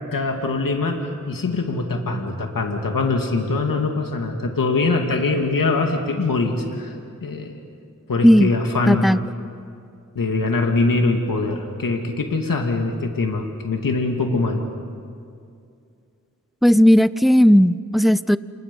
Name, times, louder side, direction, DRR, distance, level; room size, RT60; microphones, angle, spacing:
voice 1, 0.1-6.9 7.2-7.5 8.1-9.1 10.2-14.6, left 3 dB, 80° left, 3 dB, 2.4 m, -23 dB
voice 2, 8.9-9.2 16.6-18.4, equal, ahead, 16 dB, 0.6 m, -14 dB
29.5 x 28.5 x 5.5 m, 2.4 s
wide cardioid pair, 70°, 33 cm